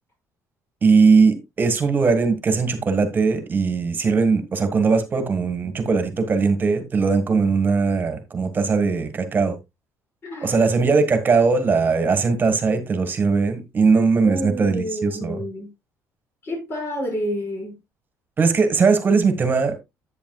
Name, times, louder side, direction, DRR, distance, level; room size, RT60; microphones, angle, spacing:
voice 1, 0.8-9.6 10.4-15.4 18.4-19.7, right 4 dB, 30° right, 1.7 m, -19 dB
voice 2, 10.2-10.6 14.2-15.7 16.4-17.7, equal, 40° left, 6.0 m, -29 dB
10.5 x 8.6 x 2.4 m
cardioid pair, 130°, 6 cm